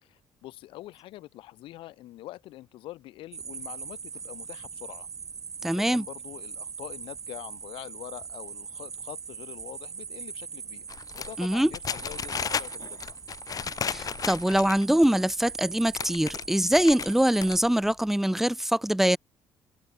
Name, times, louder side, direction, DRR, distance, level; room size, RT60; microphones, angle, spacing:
voice 1, 0.0-5.1 5.6-10.9 11.2-13.2, left 16 dB, 75° left, 1.9 m, -44 dB
sound 1, 3.3-17.6, right 6 dB, 40° right, 1.2 m, -41 dB
voice 2, 5.6-6.0 11.4-11.7 13.9-19.2, right 1 dB, 5° right, 0.8 m, -23 dB
sound 2, 10.9-15.0 15.5-15.6 15.8-17.1 17.4-17.9, left 7 dB, 45° left, 0.9 m, -34 dB
open air
supercardioid pair, 70°, 9 cm